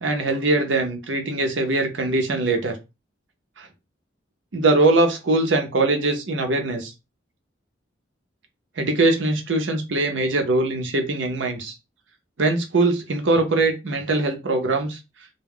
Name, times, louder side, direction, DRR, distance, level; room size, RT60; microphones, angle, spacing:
voice 1, 0.0-2.7 3.6-3.7 4.5-6.9 8.8-11.7 12.4-15.0, right 2 dB, 75° right, 0.7 m, -22 dB
2.2 x 2.0 x 3.5 m
head